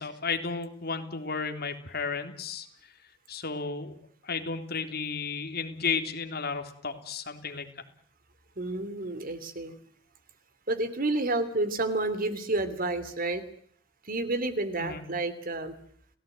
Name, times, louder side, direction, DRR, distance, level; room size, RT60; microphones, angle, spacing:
voice 1, 0.0-2.7 3.3-4.0 4.2-7.8 14.8-15.0, left 5 dB, 55° left, 5 dB, 3.6 m, -33 dB
voice 2, 8.6-9.7 10.7-13.4 14.1-15.7, right 2 dB, 50° right, 11 dB, 3.2 m, -30 dB
29.5 x 18.0 x 9.2 m, 0.62 s
head